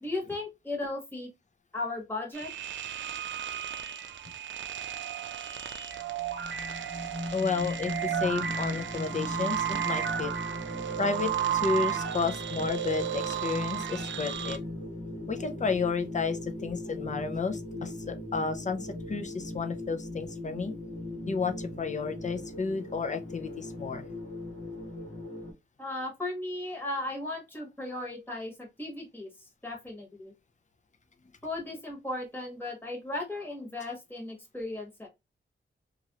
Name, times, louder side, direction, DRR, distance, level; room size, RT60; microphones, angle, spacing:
voice 1, 0.0-1.3 1.7-2.5 25.8-29.3 29.6-30.3 31.4-35.1, left 2 dB, 10° left, 1.2 m, -36 dB
sound 1, 2.3-14.6, right 9 dB, 70° right, 0.4 m, -34 dB
sound 2, 5.9-25.5, left 1 dB, 70° left, 1.1 m, -39 dB
voice 2, 7.3-10.3 11.0-14.6 15.3-20.7 21.3-24.1, left 4 dB, 35° left, 0.5 m, -32 dB
3.0 x 2.5 x 2.8 m
wide cardioid pair, 90°, 20 cm